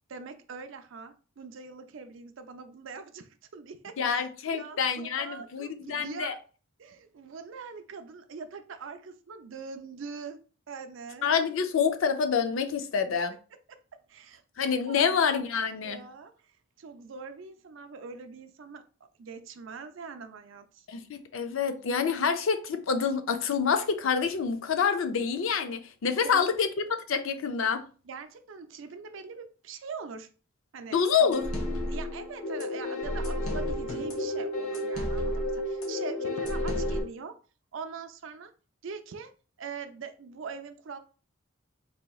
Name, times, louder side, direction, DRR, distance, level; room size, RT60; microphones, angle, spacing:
voice 1, 0.1-4.2 4.5-6.4 6.8-10.4 10.7-11.3 14.1-15.2 15.8-18.8 19.2-20.9 26.2-26.6 28.0-30.3 30.7-31.0 31.9-37.4 37.7-38.5 38.8-39.3 39.6-41.0, right 5 dB, 60° right, 0.4 m, -43 dB
voice 2, 4.0-6.3 11.2-13.3 14.6-16.0 20.9-27.8 30.9-31.5, left 6 dB, 65° left, 0.4 m, -27 dB
sound 1, 31.3-37.0, left 1 dB, 90° left, 1.0 m, -31 dB
4.0 x 2.8 x 2.3 m
head